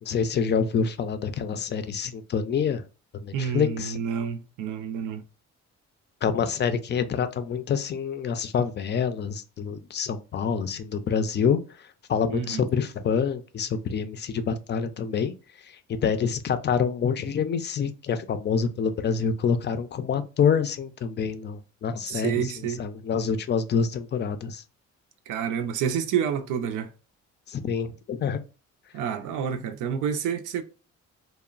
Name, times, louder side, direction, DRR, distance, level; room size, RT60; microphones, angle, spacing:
voice 1, 0.0-2.8 3.1-4.0 6.2-24.6 27.5-28.4, left 6 dB, 35° left, 0.4 m, -27 dB
voice 2, 3.3-5.2 12.3-12.7 22.1-22.8 25.3-26.9 28.9-30.6, right 8 dB, 85° right, 0.5 m, -29 dB
2.9 x 2.0 x 2.4 m
cardioid pair, 90°, 30 cm